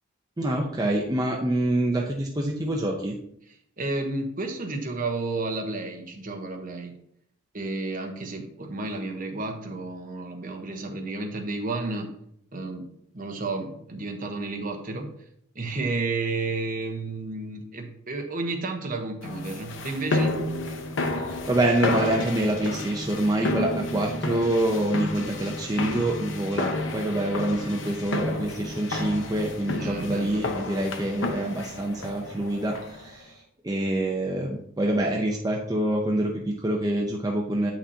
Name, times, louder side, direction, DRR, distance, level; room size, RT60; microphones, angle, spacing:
voice 1, 0.4-3.2 21.3-33.3 33.6-37.7, right 1 dB, 20° right, 0 dB, 0.6 m, -26 dB
voice 2, 3.5-6.9 7.5-12.1 12.5-12.9 13.1-15.1 15.5-20.3 29.8-30.4, right 3 dB, 45° right, 4 dB, 1.0 m, -31 dB
sound 1, 19.2-33.1, left 2 dB, 65° left, 0.8 m, -31 dB
8.3 x 5.9 x 2.8 m, 0.70 s
head